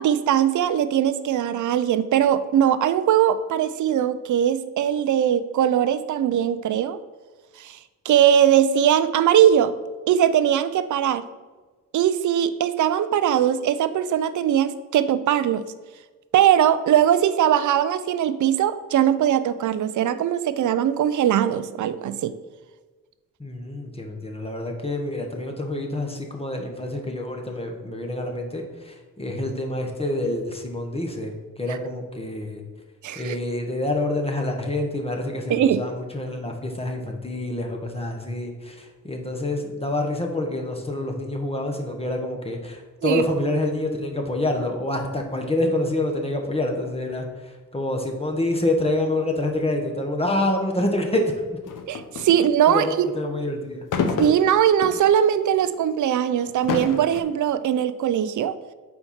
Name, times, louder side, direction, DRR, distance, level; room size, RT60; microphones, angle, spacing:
voice 1, 0.0-7.0 7.6-7.8 8.0-9.7 10.1-11.3 11.9-15.6 16.3-22.3 33.0-33.4 35.5-35.8 43.0-43.2 51.9-53.1 54.2-58.5, right 10 dB, 60° right, 13 dB, 0.5 m, -20 dB
voice 2, 23.4-32.6 33.1-51.3 52.7-53.9, left 1 dB, 15° left, 2 dB, 1.1 m, -27 dB
sound 1, 51.6-52.4 53.9-55.1 55.6-55.7 56.4-57.2, left 5 dB, 70° left, 0.7 m, -27 dB
4.4 x 4.3 x 5.6 m, 1.3 s
cardioid pair, 60°, 33 cm